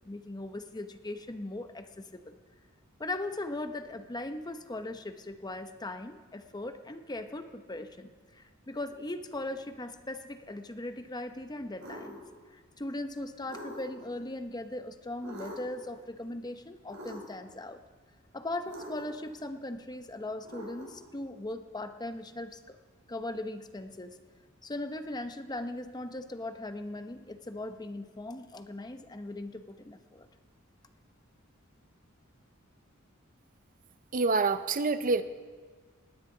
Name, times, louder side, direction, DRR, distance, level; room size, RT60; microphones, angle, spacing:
voice 1, 0.0-2.4 3.0-12.2 12.5-17.8 18.3-22.8 23.1-24.2 24.6-30.3, left 2 dB, 20° left, 8 dB, 0.8 m, -39 dB
sound 1, 11.8-12.2 13.5-14.1 15.2-15.8 16.9-17.5 18.6-19.3 20.4-21.1, equal, 65° right, 3.9 m, -44 dB
voice 2, 34.1-35.2, right 3 dB, 40° right, 11 dB, 0.6 m, -26 dB
19.5 x 18.0 x 3.9 m, 1.4 s
head